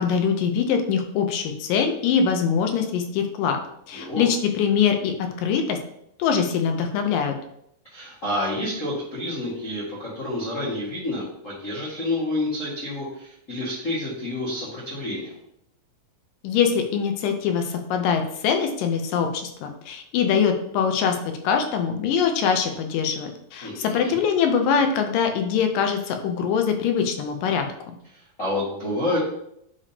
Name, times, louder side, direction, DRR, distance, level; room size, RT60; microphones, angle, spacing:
voice 1, 0.0-3.6 3.9-5.8 6.2-7.3 16.4-21.2 21.4-27.7, left 7 dB, 75° left, 5 dB, 2.2 m, -23 dB
voice 2, 3.9-4.2 7.9-15.3 23.6-24.2 28.1-29.2, left 1 dB, 45° left, -8 dB, 1.0 m, -29 dB
9.8 x 3.5 x 2.8 m, 0.74 s
omnidirectional pair, 4.1 m